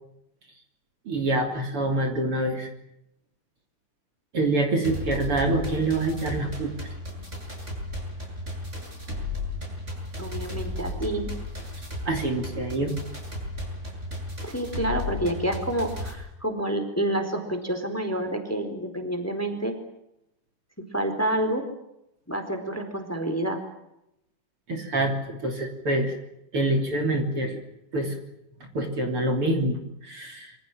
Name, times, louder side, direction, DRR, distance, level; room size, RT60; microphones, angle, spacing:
voice 1, 1.1-2.7 4.3-6.9 12.1-12.9 24.7-26.2 26.5-27.6 27.9-28.1 28.7-30.6, right 2 dB, 45° right, 4 dB, 3.9 m, -26 dB
sound 1, 4.8-16.1, left 1 dB, 20° right, 8.3 m, -34 dB
voice 2, 10.2-11.3 14.4-19.8 20.9-21.6 22.3-23.6, right 1 dB, 5° left, 7 dB, 4.1 m, -28 dB
27.0 x 26.0 x 7.6 m, 0.83 s
omnidirectional pair, 3.6 m